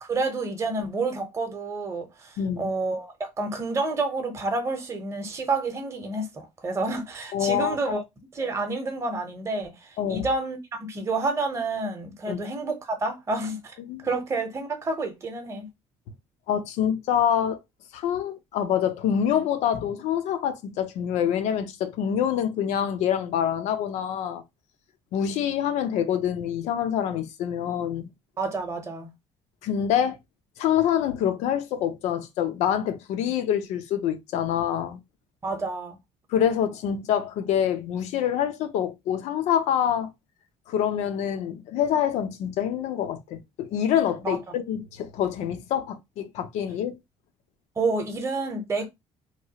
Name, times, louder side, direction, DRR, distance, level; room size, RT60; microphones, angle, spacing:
voice 1, 0.0-8.0 8.3-13.7 14.0-15.7 28.4-29.1 35.4-36.0 44.2-44.4 47.8-48.9, right 3 dB, 25° right, 0.7 m, -29 dB
voice 2, 2.4-2.7 7.3-7.8 10.0-10.2 12.3-12.4 13.8-14.1 16.5-17.6 17.9-24.4 25.1-28.1 29.6-30.2 30.6-35.0 36.3-40.1 40.7-47.0, left 9 dB, 85° left, 0.6 m, -26 dB
3.0 x 2.3 x 2.8 m
cardioid pair, 140°, 12 cm